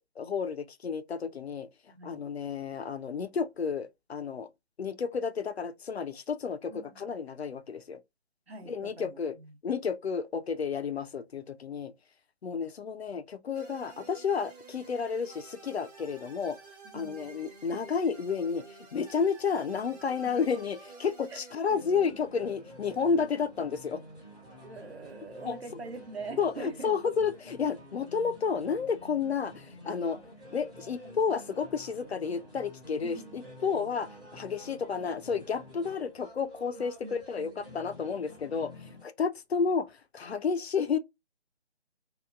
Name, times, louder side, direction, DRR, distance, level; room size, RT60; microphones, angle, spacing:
voice 1, 0.2-1.7 2.0-4.5 4.8-8.0 8.7-9.4 9.6-11.9 12.4-16.6 16.9-18.6 18.9-24.0 25.4-25.6 26.4-30.2 30.5-41.0, left 6 dB, 65° left, 0.5 m, -31 dB
voice 2, 1.9-2.3 6.7-7.2 8.5-9.5 16.9-17.3 19.9-20.0 21.3-22.2 24.6-26.9 33.0-33.4 37.0-37.7, right 3 dB, 60° right, 0.9 m, -44 dB
sound 1, 13.5-21.5, right 4 dB, 35° right, 1.1 m, -51 dB
sound 2, 21.7-39.0, left 1 dB, 5° right, 0.6 m, -49 dB
2.9 x 2.2 x 2.3 m
figure-of-eight pair, 150°, 35 cm